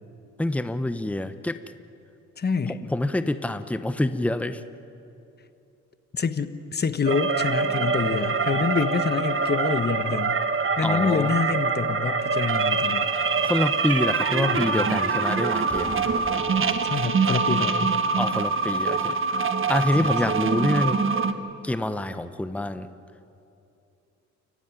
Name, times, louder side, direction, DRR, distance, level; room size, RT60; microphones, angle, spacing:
voice 1, 0.4-1.6 2.9-4.6 10.8-11.4 13.4-15.9 18.1-19.2 19.7-21.0 21.6-22.9, left 1 dB, 5° left, 11 dB, 1.0 m, -26 dB
voice 2, 2.4-2.8 6.1-10.4 10.8-13.1 14.4-15.0 16.8-18.1 20.0-20.4, left 5 dB, 35° left, 11 dB, 1.3 m, -27 dB
sound 1, 7.1-21.3, right 4 dB, 45° right, 1.4 m, -24 dB
sound 2, 7.6-10.1, right 7 dB, 85° right, 3.9 m, -44 dB
Explosion, 15.6-17.8, right 1 dB, 10° right, 3.5 m, -41 dB
29.5 x 15.0 x 9.7 m, 2.7 s
cardioid pair, 90°, 30 cm